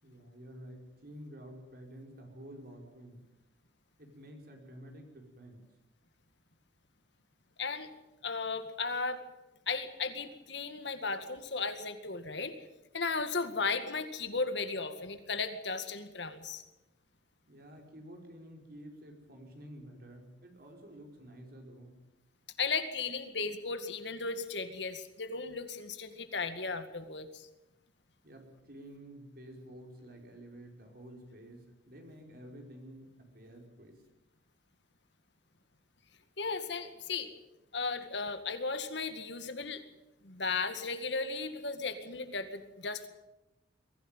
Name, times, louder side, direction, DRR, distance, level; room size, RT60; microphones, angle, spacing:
voice 1, 0.0-3.2 4.0-5.6 17.5-22.0 28.2-34.0, equal, 50° right, 2 dB, 5.1 m, -50 dB
voice 2, 7.6-7.9 8.2-9.2 9.7-12.5 12.9-16.6 22.6-27.5 36.4-37.3 37.7-39.8 40.2-43.1, left 4 dB, 70° left, 9 dB, 2.1 m, -35 dB
23.0 x 15.5 x 9.1 m, 0.96 s
head